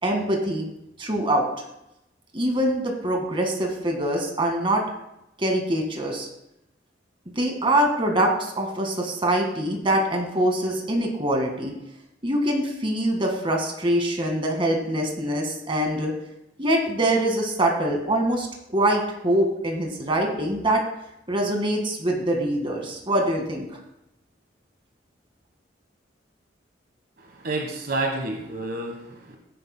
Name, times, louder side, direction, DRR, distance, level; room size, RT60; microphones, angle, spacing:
voice 1, 0.0-0.6 1.0-1.5 2.3-4.8 5.4-6.3 7.3-11.7 12.2-16.1 16.6-20.8 21.3-23.7, right 1 dB, 30° right, 2 dB, 1.9 m, -24 dB
voice 2, 27.2-29.4, right 2 dB, 60° right, 2 dB, 1.3 m, -30 dB
16.0 x 9.5 x 2.2 m, 0.84 s
head